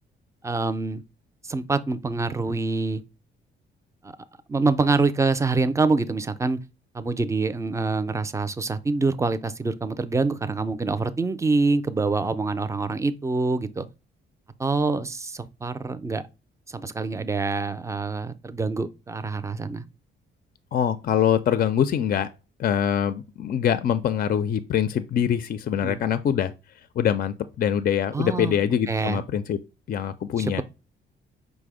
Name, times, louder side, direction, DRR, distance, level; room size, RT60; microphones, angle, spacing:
voice 1, 0.4-1.0 1.4-3.0 4.0-4.1 4.5-6.6 6.9-13.9 14.6-16.2 16.7-19.8 25.8-26.0 28.1-28.5 28.9-29.2 30.4-30.6, right 3 dB, 15° right, 0.4 m, -25 dB
voice 2, 20.7-22.3 22.6-26.5 27.0-29.6 29.9-30.6, left 9 dB, 45° left, 0.4 m, -24 dB
5.0 x 2.0 x 4.8 m
cardioid pair, 90°, 20 cm